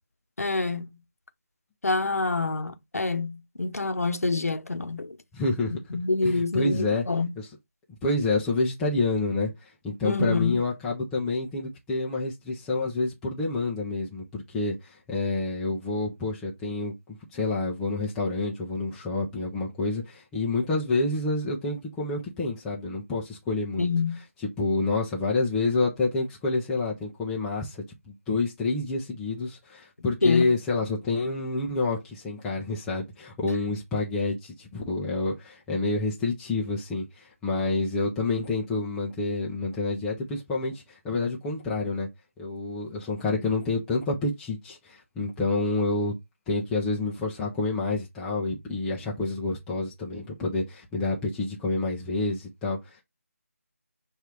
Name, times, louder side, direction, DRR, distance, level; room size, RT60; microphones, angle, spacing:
voice 1, 0.4-1.0 1.8-5.2 5.9-7.3 10.0-10.6 23.8-24.2 30.2-30.6, left 3 dB, 70° left, 0.8 m, -26 dB
voice 2, 5.3-5.7 6.2-7.0 7.4-7.5 8.0-9.5 9.8-16.9 17.3-23.9 24.6-42.1 42.4-46.1 46.5-53.0, left 3 dB, 5° left, 0.3 m, -28 dB
6.5 x 2.3 x 3.1 m
figure-of-eight pair, 155°, 8 cm